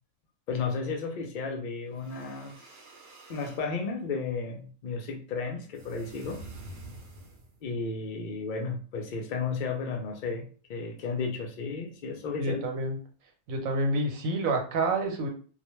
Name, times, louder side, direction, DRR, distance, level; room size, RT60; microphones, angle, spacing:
voice 1, 0.5-2.6 3.3-6.4 7.6-10.4 10.7-12.6, left 4 dB, 70° left, 2 dB, 0.4 m, -33 dB
sound 1, 1.9-3.7 5.7-7.6, right 2 dB, 60° right, 0.7 m, -47 dB
voice 2, 12.4-13.0 13.5-15.3, right 2 dB, 85° right, 3 dB, 1.1 m, -28 dB
2.3 x 2.1 x 3.0 m, 0.40 s
omnidirectional pair, 1.4 m